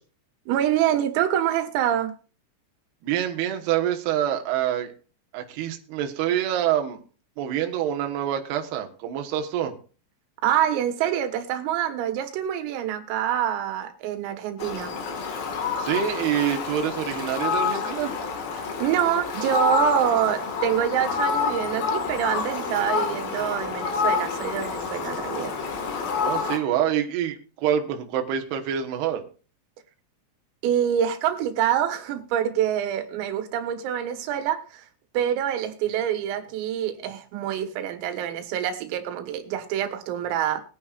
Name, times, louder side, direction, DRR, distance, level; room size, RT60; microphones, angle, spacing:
voice 1, 0.5-2.1 10.4-14.9 18.5-25.5 30.6-34.9 35.1-40.6, right 10 dB, 85° right, 4.0 m, -26 dB
voice 2, 3.0-4.9 5.3-7.0 7.4-9.8 15.8-18.1 26.2-29.2, right 10 dB, 70° right, 2.8 m, -26 dB
Fowl, 14.6-26.6, left 6 dB, 60° left, 2.9 m, -28 dB
21.5 x 9.4 x 2.4 m
omnidirectional pair, 5.8 m